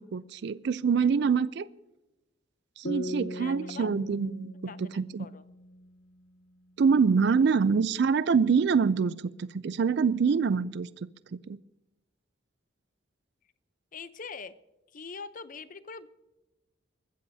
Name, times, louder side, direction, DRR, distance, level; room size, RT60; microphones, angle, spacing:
voice 1, 0.0-1.7 2.8-5.3 6.8-9.1 9.4-10.9 11.5-11.6, right 5 dB, 55° right, 17 dB, 0.4 m, -25 dB
sound 1, 2.8-6.3, left 1 dB, 90° left, 1.4 m, -40 dB
voice 2, 3.4-3.9 4.7-4.8 5.2-5.4 13.9-14.5 14.9-16.1, left 5 dB, 45° left, 14 dB, 0.7 m, -42 dB
21.5 x 14.0 x 2.7 m, 1.0 s
head